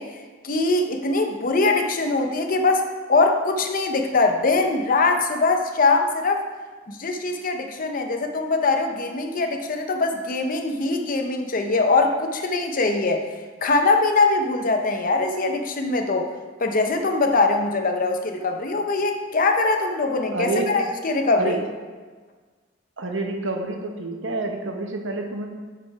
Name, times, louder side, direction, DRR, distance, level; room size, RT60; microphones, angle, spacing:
voice 1, 0.0-6.5 6.9-13.2 13.6-16.3 16.6-21.6, left 3 dB, 45° left, 5 dB, 0.7 m, -22 dB
voice 2, 20.3-20.7 21.3-21.6 23.0-25.5, right 2 dB, 80° right, 3 dB, 1.0 m, -28 dB
7.4 x 5.2 x 4.7 m, 1.4 s
head